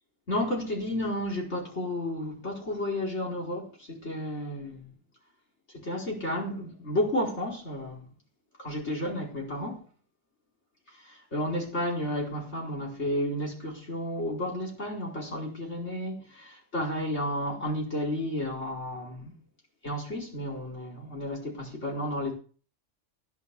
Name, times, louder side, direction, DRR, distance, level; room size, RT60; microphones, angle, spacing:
voice 1, 0.3-4.9 5.7-8.1 8.6-9.8 11.0-19.3 19.8-22.3, left 1 dB, 60° left, 5.0 m, -32 dB
16.5 x 6.2 x 6.9 m
omnidirectional pair, 1.3 m